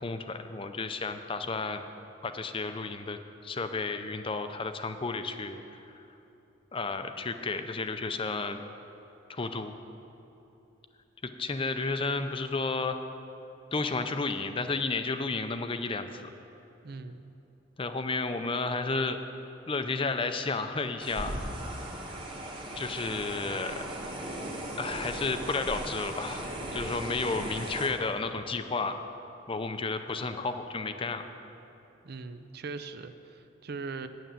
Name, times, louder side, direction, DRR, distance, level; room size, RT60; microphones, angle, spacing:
voice 1, 0.0-1.8 2.2-5.6 6.0-6.1 6.7-8.6 9.3-9.7 11.2-13.0 13.7-16.2 17.8-19.2 19.7-21.4 22.8-23.8 24.8-28.9 29.5-31.2, left 3 dB, 30° left, 8 dB, 0.5 m, -32 dB
voice 2, 16.8-17.4 32.0-34.1, right 4 dB, 55° right, 10 dB, 0.5 m, -40 dB
sound 1, 21.0-27.9, right 1 dB, 25° right, 1.3 m, -37 dB
9.2 x 7.0 x 8.9 m, 3.0 s
head